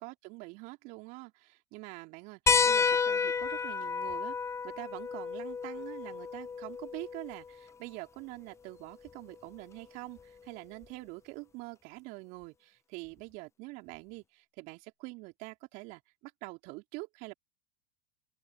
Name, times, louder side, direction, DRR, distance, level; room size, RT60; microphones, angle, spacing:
voice 1, 0.0-4.4 4.6-17.3, right 25 dB, 50° right, 4.0 m, -45 dB
sound 1, 2.5-7.5 9.1-9.2 10.8-10.9, left 5 dB, 15° left, 0.6 m, -30 dB
open air
hypercardioid pair, 85°, 17 cm